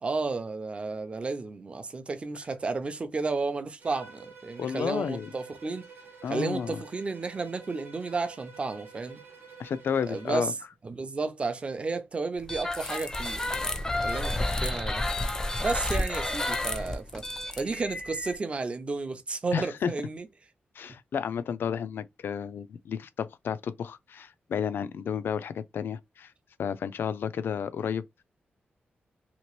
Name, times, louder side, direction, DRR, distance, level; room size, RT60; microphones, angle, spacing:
voice 1, 0.0-5.9 6.3-9.2 10.1-10.5 10.8-13.7 14.0-15.0 15.6-17.2 17.6-20.3, right 3 dB, 30° right, 0.5 m, -32 dB
Bowed string instrument, 3.8-10.5, right 5 dB, 85° right, 0.9 m, -49 dB
voice 2, 4.6-5.3 6.2-6.8 9.6-10.5 19.5-19.9 20.8-26.3 26.6-28.0, left 7 dB, 75° left, 0.3 m, -32 dB
sound 1, 12.4-18.4, left 1 dB, 15° left, 0.5 m, -31 dB
2.9 x 2.8 x 3.0 m
wide cardioid pair, 135°, 4 cm